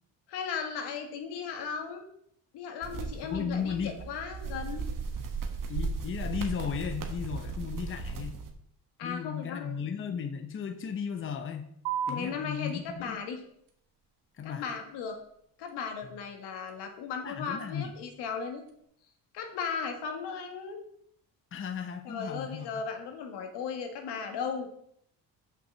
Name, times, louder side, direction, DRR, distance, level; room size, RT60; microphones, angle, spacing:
voice 1, 0.3-2.1 2.5-4.9 9.0-9.9 12.1-13.4 14.4-15.2 15.6-18.6 19.3-20.8 22.0-24.7, left 6 dB, 80° left, 4 dB, 1.8 m, -36 dB
sound 1, 2.8-8.5, right 4 dB, 50° right, 1.4 m, -36 dB
voice 2, 3.2-4.0 5.7-8.4 9.0-11.7 12.1-13.2 14.4-14.7 17.2-17.9 21.5-22.7, left 7 dB, 30° left, 5 dB, 0.9 m, -35 dB
sound 2, 11.9-18.8, right 7 dB, 85° right, 1.4 m, -43 dB
6.1 x 5.9 x 6.9 m, 0.71 s
cardioid pair, 110°, 40 cm